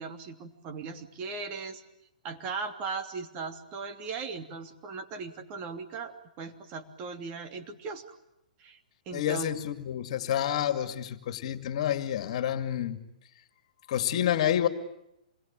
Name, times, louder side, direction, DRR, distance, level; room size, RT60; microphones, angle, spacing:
voice 1, 0.0-1.8 2.2-8.2 8.6-8.8 9.1-9.5, right 4 dB, 35° right, 6 dB, 3.0 m, -38 dB
voice 2, 9.1-13.0 13.9-14.7, left 10 dB, 55° left, 9 dB, 2.4 m, -28 dB
27.5 x 22.0 x 9.1 m, 0.81 s
hypercardioid pair, 130°, 4 cm